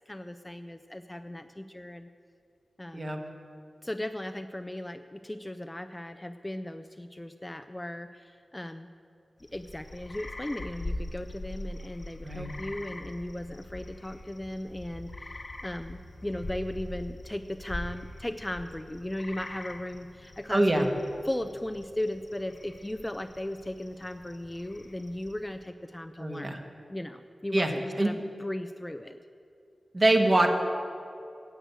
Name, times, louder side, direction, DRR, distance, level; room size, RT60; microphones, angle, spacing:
voice 1, 0.1-2.1 2.8-3.1 3.8-8.9 9.5-20.9 21.2-26.6 26.9-29.2, left 1 dB, 15° left, 9 dB, 0.3 m, -37 dB
sound 1, 9.4-25.6, left 1 dB, 40° left, 0.9 m, -43 dB
voice 2, 20.5-20.9 26.2-26.6 27.5-28.1 29.9-30.5, right 1 dB, 35° right, 3 dB, 1.2 m, -24 dB
10.0 x 7.9 x 8.1 m, 2.6 s
wide cardioid pair, 95°, 0 cm